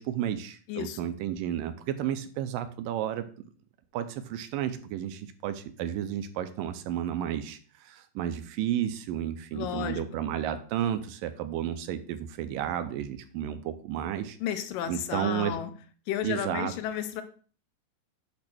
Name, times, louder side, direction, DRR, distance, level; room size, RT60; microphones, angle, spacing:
voice 1, 0.0-3.3 3.9-14.4 14.9-15.6 16.2-16.7, right 10 dB, 80° right, 10 dB, 2.2 m, -32 dB
voice 2, 0.7-1.0 9.5-10.0 14.4-15.7 16.1-17.2, left 10 dB, 80° left, 10 dB, 2.3 m, -32 dB
8.7 x 3.2 x 6.0 m, 0.41 s
omnidirectional pair, 4.1 m